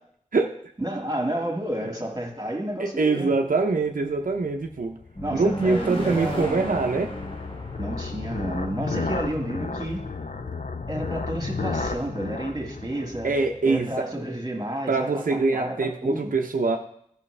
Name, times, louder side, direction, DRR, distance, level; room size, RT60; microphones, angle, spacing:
voice 1, 0.8-3.3 5.2-6.7 7.8-10.0 10.9-13.3 13.6-16.3, right 1 dB, 25° right, 1 dB, 1.9 m, -31 dB
voice 2, 2.8-5.0 5.3-7.1 8.9-9.1 13.2-14.1 14.9-16.8, right 3 dB, 90° right, 3 dB, 0.6 m, -24 dB
sound 1, 4.4-13.9, left 4 dB, 70° left, 0.6 m, -33 dB
sound 2, 5.1-9.8, left 1 dB, 40° left, 1.8 m, -36 dB
13.5 x 5.7 x 3.3 m, 0.68 s
wide cardioid pair, 45°, 14 cm